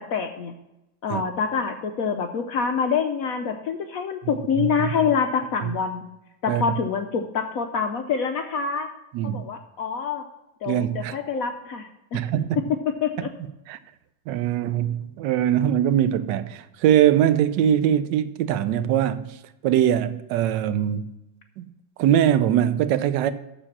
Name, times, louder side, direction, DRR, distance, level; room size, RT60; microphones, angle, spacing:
voice 1, 0.1-0.5 1.0-6.0 6.4-8.9 9.2-10.2 10.6-12.2 13.0-13.3, left 6 dB, 80° left, 0.7 m, -26 dB
voice 2, 4.2-4.9 5.6-5.7 6.5-6.6 9.1-9.4 10.6-11.2 12.1-12.6 13.2-13.3 13.7-13.8 14.3-19.4 19.6-21.1 21.6-21.7 22.0-23.3, right 10 dB, 75° right, 1.1 m, -22 dB
7.3 x 6.7 x 7.2 m
omnidirectional pair, 2.2 m